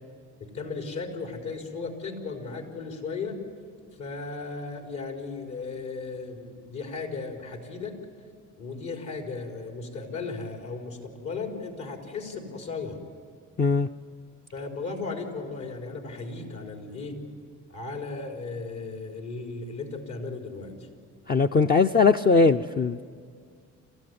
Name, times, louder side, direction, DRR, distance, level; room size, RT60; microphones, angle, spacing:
voice 1, 0.4-3.4 4.0-8.0 8.6-13.0 14.5-17.2 17.7-20.7, left 4 dB, 70° left, 2 dB, 4.4 m, -36 dB
voice 2, 13.6-13.9 21.3-23.0, left 4 dB, 30° left, 5 dB, 0.6 m, -20 dB
28.0 x 14.5 x 9.7 m, 2.2 s
cardioid pair, 90°, 30 cm